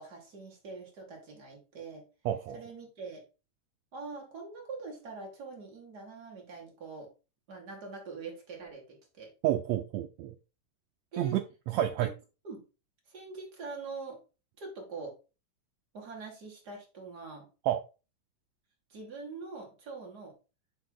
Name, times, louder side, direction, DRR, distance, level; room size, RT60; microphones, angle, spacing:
voice 1, 0.0-2.1 2.5-3.2 3.9-7.1 7.5-9.3 11.1-11.4 11.8-12.1 12.4-12.6 13.1-14.2 14.6-15.1 15.9-17.5 18.9-20.3, right 4 dB, 35° right, 0 dB, 2.2 m, -43 dB
voice 2, 2.2-2.6 9.4-10.4 11.2-12.1 17.7-17.8, right 12 dB, 85° right, 7 dB, 1.5 m, -30 dB
9.5 x 3.4 x 3.8 m, 0.31 s
omnidirectional pair, 3.7 m